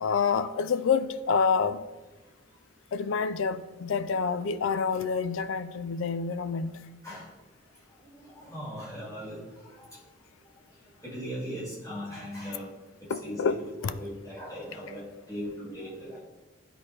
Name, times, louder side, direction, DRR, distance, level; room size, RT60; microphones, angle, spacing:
voice 1, 0.0-1.8 2.9-6.9 13.1-13.9, left 5 dB, 70° left, 0.4 m, -28 dB
voice 2, 8.2-9.4 9.8-9.9 11.0-12.7 13.0-13.5 13.8-16.2, equal, 15° left, 2.3 m, -39 dB
10.5 x 4.3 x 3.3 m
head